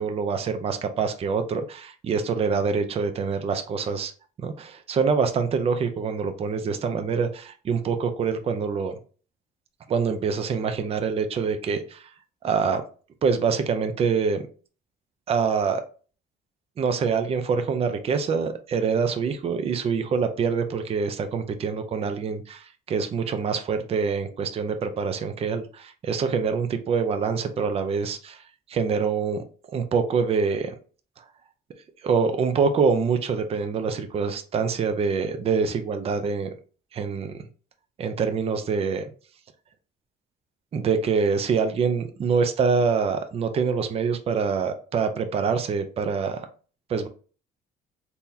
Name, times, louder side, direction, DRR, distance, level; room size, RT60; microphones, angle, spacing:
voice 1, 0.0-4.1 4.4-8.9 9.9-12.1 12.4-12.8 13.2-14.4 15.3-15.8 16.8-28.4 28.7-30.7 32.0-36.5 36.9-37.3 38.0-39.0 40.7-46.5 46.9-47.1, right 5 dB, 35° right, 8 dB, 0.5 m, -25 dB
3.8 x 2.8 x 2.7 m, 0.39 s
cardioid pair, 110°, 17 cm